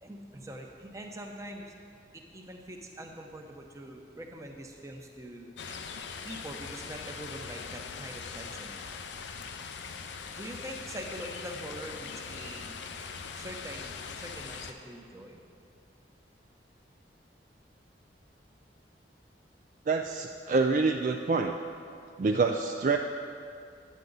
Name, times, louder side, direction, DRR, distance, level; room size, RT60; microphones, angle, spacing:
voice 1, 0.0-1.7 2.1-5.5 6.2-8.8 10.4-12.8 13.4-15.4, right 1 dB, 20° right, 2 dB, 0.8 m, -43 dB
sound 1, 5.6-14.7, left 5 dB, 85° left, 0.6 m, -41 dB
voice 2, 19.9-21.5 22.2-23.0, right 4 dB, 45° right, 4 dB, 0.3 m, -26 dB
9.6 x 9.3 x 4.0 m, 2.3 s
head